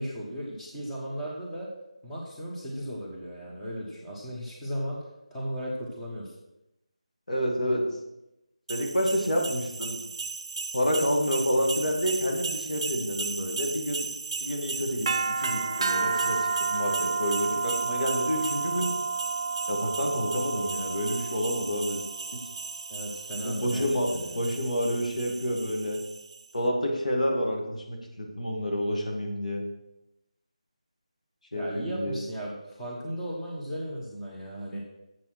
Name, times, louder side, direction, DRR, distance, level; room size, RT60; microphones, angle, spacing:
voice 1, 0.0-1.7 2.0-5.0 5.3-6.3 22.9-24.4 31.5-34.8, equal, 5° left, -6 dB, 1.1 m, -36 dB
voice 2, 7.3-7.8 8.7-10.0 10.7-14.1 14.4-16.4 16.7-18.9 19.7-22.0 23.4-26.0 26.5-29.6 31.5-32.2, equal, 85° left, 0 dB, 2.6 m, -28 dB
sound 1, 8.7-26.4, right 4 dB, 45° right, 0.4 m, -32 dB
7.5 x 6.7 x 6.0 m, 0.92 s
figure-of-eight pair, 170°, 4 cm